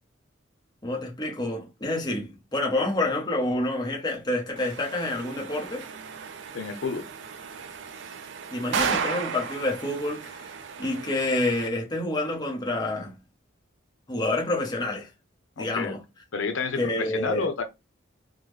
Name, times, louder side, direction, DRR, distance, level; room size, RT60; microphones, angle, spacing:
voice 1, 0.8-5.8 8.5-10.5 10.8-13.1 14.1-15.1 15.6-16.0 16.8-17.5, left 2 dB, 20° left, 0.8 m, -28 dB
sound 1, 4.6-11.7, right 6 dB, 65° right, 0.4 m, -34 dB
voice 2, 6.5-7.0 15.6-16.0 16.3-17.6, left 4 dB, 85° left, 0.6 m, -30 dB
3.5 x 2.1 x 3.1 m
head